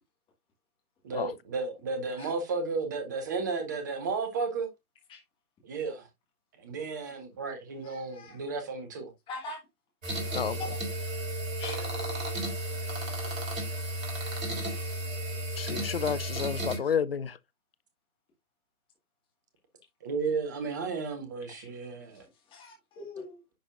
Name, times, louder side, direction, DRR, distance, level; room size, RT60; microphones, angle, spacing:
voice 1, 1.0-4.7 5.6-6.1 6.6-9.1 11.7-12.0 20.0-22.3, right 4 dB, 15° right, 0.6 m, -33 dB
voice 2, 7.8-8.4 9.3-9.6 10.6-10.7 11.6-11.8 12.1-12.3 21.5-21.7 22.5-23.3, left 3 dB, 10° left, 1.8 m, -42 dB
sound 1, 10.0-16.8, right 1 dB, 60° right, 3.4 m, -33 dB
voice 3, 15.6-17.4, left 7 dB, 45° left, 0.4 m, -30 dB
10.0 x 4.4 x 2.5 m
figure-of-eight pair, 135°, 44 cm